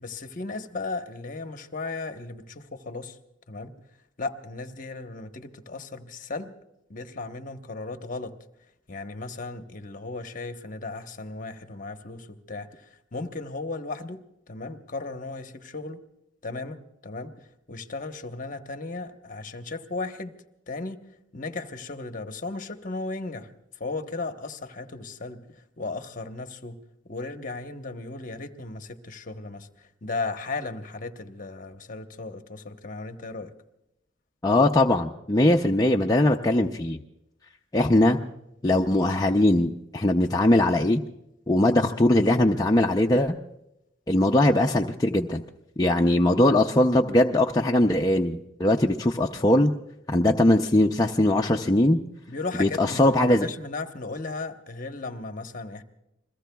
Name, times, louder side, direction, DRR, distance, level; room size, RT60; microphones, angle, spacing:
voice 1, 0.0-3.2 3.5-3.8 4.2-6.5 6.9-8.3 8.9-16.0 16.4-20.4 20.7-21.0 21.3-26.8 27.0-33.5 52.3-55.8, left 3 dB, 45° left, 6 dB, 1.0 m, -36 dB
voice 2, 34.4-37.0 37.7-38.2 38.6-41.0 41.5-43.4 44.1-45.4 45.8-49.7 50.1-52.0 52.6-53.5, left 1 dB, 20° left, 1 dB, 0.5 m, -21 dB
28.5 x 21.5 x 2.3 m, 0.84 s
head